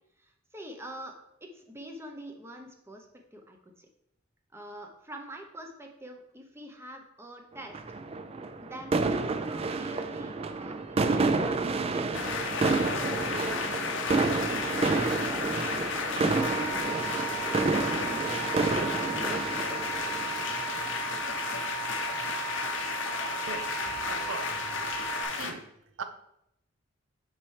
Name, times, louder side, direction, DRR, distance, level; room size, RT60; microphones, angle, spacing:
voice 1, 0.2-3.9 4.5-7.8 8.6-16.9 17.3-20.0 20.4-20.5, right 1 dB, 15° right, 0.7 m, -46 dB
sound 1, 7.7-21.4, right 3 dB, 30° right, 0.3 m, -29 dB
sound 2, 12.1-25.5, left 5 dB, 65° left, 0.7 m, -33 dB
sound 3, 16.4-25.2, right 15 dB, 25° left, 1.1 m, -39 dB
voice 2, 23.5-24.7 25.0-25.7 26.0-26.1, right 5 dB, 70° right, 0.6 m, -40 dB
5.8 x 5.7 x 3.3 m
head